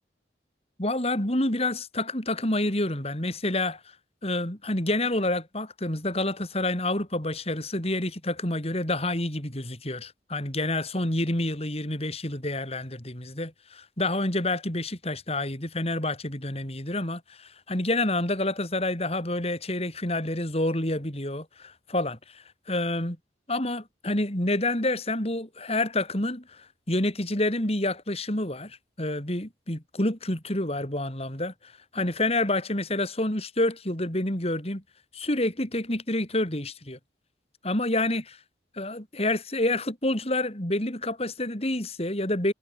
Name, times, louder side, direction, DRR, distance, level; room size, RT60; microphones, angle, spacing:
voice 1, 0.8-3.8 4.2-23.2 23.5-31.5 31.9-34.8 35.1-37.0 37.6-38.4 38.7-42.5, left 1 dB, 35° left, 4.5 m, -28 dB
head